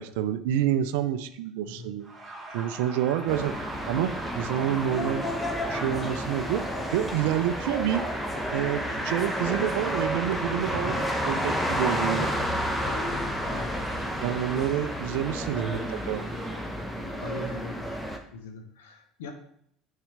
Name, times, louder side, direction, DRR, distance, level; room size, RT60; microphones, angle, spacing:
voice 1, 0.0-2.1 2.5-3.6 3.9-5.3 5.7-8.0 8.5-12.3 14.2-16.2, right 11 dB, 65° right, 11 dB, 0.5 m, -28 dB
voice 2, 1.7-2.0 12.8-13.1 13.5-13.8 17.2-17.8 18.3-19.3, left 3 dB, 70° left, 5 dB, 1.0 m, -40 dB
sound 1, 2.0-16.8, right 2 dB, 15° right, 2.1 m, -42 dB
sound 2, 3.3-18.2, equal, 5° left, 1.1 m, -31 dB
9.8 x 3.7 x 3.3 m, 0.67 s
figure-of-eight pair, 65°, 0 cm